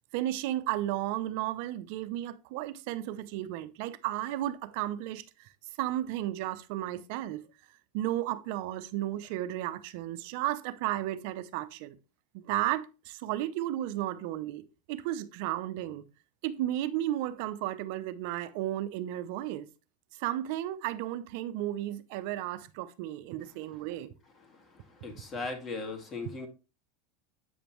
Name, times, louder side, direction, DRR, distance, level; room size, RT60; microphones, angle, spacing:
voice 1, 0.1-5.5 5.8-7.4 7.9-12.0 12.3-14.6 14.9-16.1 16.4-19.7 20.2-24.1, right 14 dB, 65° right, 0.6 m, -33 dB
voice 2, 25.0-26.5, left 3 dB, 30° left, 1.9 m, -37 dB
7.9 x 5.1 x 3.0 m
supercardioid pair, 125°, 0 cm